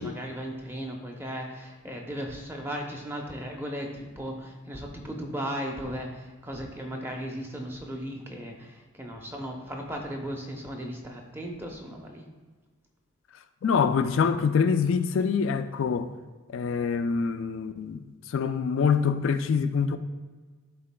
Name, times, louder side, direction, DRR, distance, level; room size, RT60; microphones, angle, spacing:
voice 1, 0.0-12.3, equal, 10° right, 0.7 m, -36 dB
voice 2, 13.6-16.1 16.5-20.0, left 6 dB, 70° left, 0.3 m, -25 dB
11.0 x 3.9 x 2.2 m
head